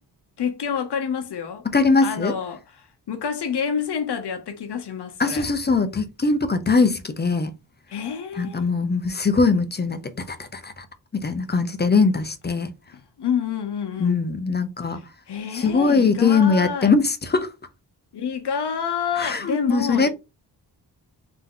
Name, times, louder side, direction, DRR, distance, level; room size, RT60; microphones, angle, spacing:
voice 1, 0.4-1.7 2.0-5.5 7.9-8.7 12.9-14.2 14.9-16.9 18.1-20.1, left 7 dB, 70° left, 0.9 m, -28 dB
voice 2, 1.7-2.4 5.2-7.5 8.4-10.9 11.1-12.7 14.0-15.0 15.5-17.5 19.2-20.1, left 4 dB, 25° left, 0.5 m, -21 dB
3.7 x 2.8 x 3.7 m
wide cardioid pair, 140°, 42 cm